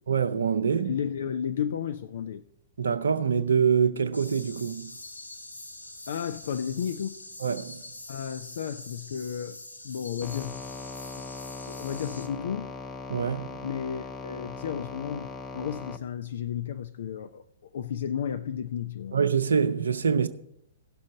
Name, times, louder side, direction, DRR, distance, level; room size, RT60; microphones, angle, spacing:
voice 1, 0.1-0.9 2.8-5.0 7.4-7.8 13.1-13.6 19.1-20.3, right 6 dB, 65° right, 0.5 m, -25 dB
voice 2, 0.9-2.4 6.1-7.2 8.1-9.6 9.8-10.6 11.7-12.7 13.6-17.4 17.7-19.2, left 8 dB, 55° left, 0.5 m, -33 dB
sound 1, 4.1-12.3, left 1 dB, 85° left, 1.2 m, -44 dB
sound 2, 10.2-16.0, left 4 dB, 15° left, 0.6 m, -40 dB
16.5 x 6.3 x 4.0 m
figure-of-eight pair, 110°, 0 cm